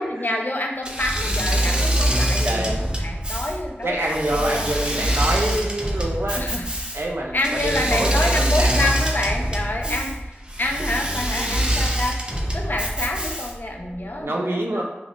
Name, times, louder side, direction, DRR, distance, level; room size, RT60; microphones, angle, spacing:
voice 1, 0.0-4.7 5.4-5.6 6.4-6.7 7.3-10.1 10.6-12.2 12.5-14.8, left 1 dB, 50° left, 2 dB, 0.4 m, -27 dB
Engine / Mechanisms, 0.8-13.7, equal, 20° right, 0.5 m, -24 dB
voice 2, 2.4-2.8 3.8-6.5 6.9-8.9 9.8-10.0 10.8-10.9 11.5-11.6 12.8-12.9 13.7-14.8, right 1 dB, 70° right, -1 dB, 0.5 m, -27 dB
2.4 x 2.3 x 3.5 m, 0.99 s
wide cardioid pair, 50°, 4 cm